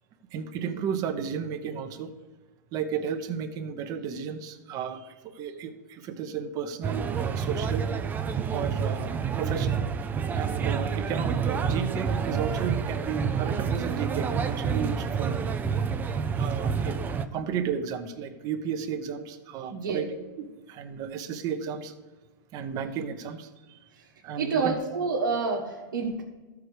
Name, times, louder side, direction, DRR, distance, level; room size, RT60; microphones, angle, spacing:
voice 1, 0.3-2.1 2.7-7.9 8.5-9.8 10.3-15.6 16.4-17.0 17.3-21.9 22.5-23.8 24.2-24.8, right 7 dB, 35° right, 7 dB, 0.9 m, -33 dB
sound 1, 6.8-17.2, right 6 dB, 15° right, 0.5 m, -28 dB
voice 2, 24.4-26.2, right 4 dB, 90° right, -4 dB, 1.4 m, -28 dB
13.0 x 4.8 x 4.9 m, 1.2 s
hypercardioid pair, 130°, 10 cm